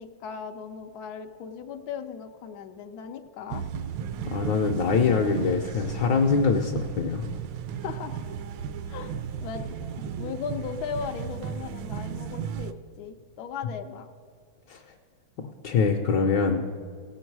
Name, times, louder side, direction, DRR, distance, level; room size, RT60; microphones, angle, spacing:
voice 1, 0.0-3.6 7.8-8.1 8.9-9.7 10.2-14.1, left 6 dB, 90° left, 5 dB, 0.8 m, -37 dB
sound 1, 3.5-12.7, right 7 dB, 75° right, 1.1 m, -35 dB
voice 2, 4.3-7.3 14.7-14.8 15.4-16.6, left 5 dB, 70° left, 2 dB, 1.1 m, -24 dB
16.5 x 7.2 x 4.6 m, 2.2 s
omnidirectional pair, 2.4 m